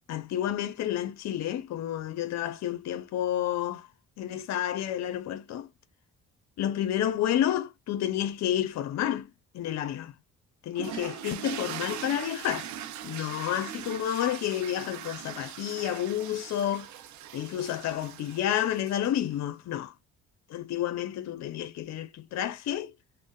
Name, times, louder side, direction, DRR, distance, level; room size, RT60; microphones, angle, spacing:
voice 1, 0.1-3.9 4.2-5.7 6.6-10.2 10.6-12.7 13.0-16.9 17.3-19.9 20.5-22.9, left 11 dB, 65° left, 0.5 m, -30 dB
sound 1, 10.8-19.2, right 11 dB, 70° right, 0.5 m, -41 dB
3.2 x 2.0 x 2.3 m
cardioid pair, 90°, 30 cm